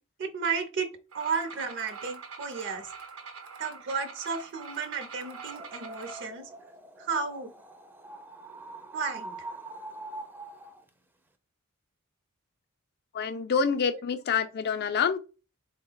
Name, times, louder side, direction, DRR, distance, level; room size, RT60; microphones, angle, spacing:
voice 1, 0.2-0.9 1.1-2.9 3.6-6.5 7.0-7.5 8.9-9.4, right 5 dB, 60° right, 0.6 m, -33 dB
sound 1, 1.1-6.3, right 5 dB, 85° right, 0.8 m, -44 dB
sound 2, 5.1-10.9, right 2 dB, 10° right, 0.4 m, -44 dB
voice 2, 13.1-15.2, left 6 dB, 50° left, 0.4 m, -27 dB
4.0 x 2.1 x 3.8 m
head